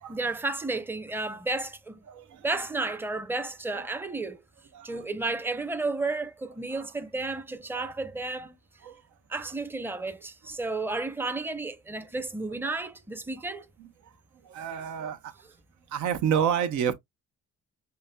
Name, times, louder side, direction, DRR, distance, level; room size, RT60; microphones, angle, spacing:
voice 1, 0.1-2.0 2.4-4.4 4.8-8.6 9.3-13.7, right 3 dB, 5° right, 0.6 m, -32 dB
voice 2, 14.5-15.2 15.9-16.9, right 8 dB, 80° right, 0.8 m, -28 dB
5.8 x 2.7 x 2.2 m
cardioid pair, 90°, 30 cm